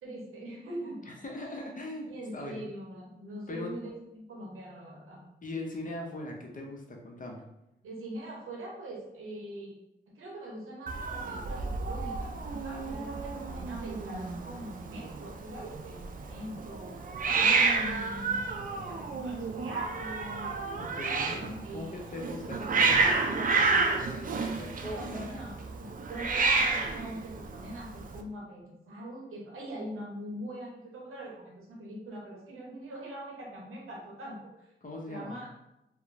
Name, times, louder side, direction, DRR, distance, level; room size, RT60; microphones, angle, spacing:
voice 1, 0.0-1.0 1.4-1.6 2.0-5.2 7.8-9.8 10.1-17.1 17.3-20.5 21.6-22.2 24.3-25.6 26.1-34.7 35.1-35.5, right 1 dB, 85° right, -3 dB, 0.7 m, -42 dB
voice 2, 1.1-2.6 3.5-3.7 5.4-7.4 20.8-25.5 34.8-35.4, left 2 dB, 40° left, 1 dB, 0.7 m, -40 dB
Hiss, 10.9-28.2, right 4 dB, 45° right, 0.4 m, -30 dB
2.9 x 2.0 x 2.5 m, 0.88 s
supercardioid pair, 40°, 21 cm